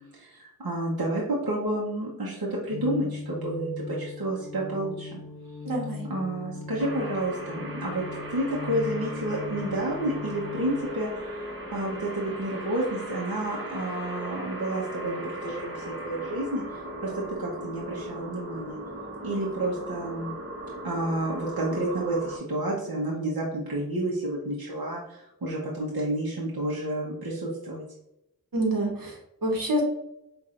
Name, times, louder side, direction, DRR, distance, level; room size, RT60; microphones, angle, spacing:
voice 1, 0.0-5.2 6.1-8.0 8.3-16.6 17.0-18.8 19.2-20.3 20.8-27.8, right 1 dB, 85° right, -4 dB, 0.9 m, -30 dB
sound 1, 2.7-10.9, left 4 dB, 60° left, 0.8 m, -38 dB
voice 2, 5.6-6.0 28.5-29.8, right 1 dB, 65° right, 0 dB, 1.1 m, -27 dB
sound 2, 6.8-22.4, right 1 dB, 35° right, 1.1 m, -38 dB
5.8 x 2.5 x 2.5 m, 0.85 s
wide cardioid pair, 60°, 36 cm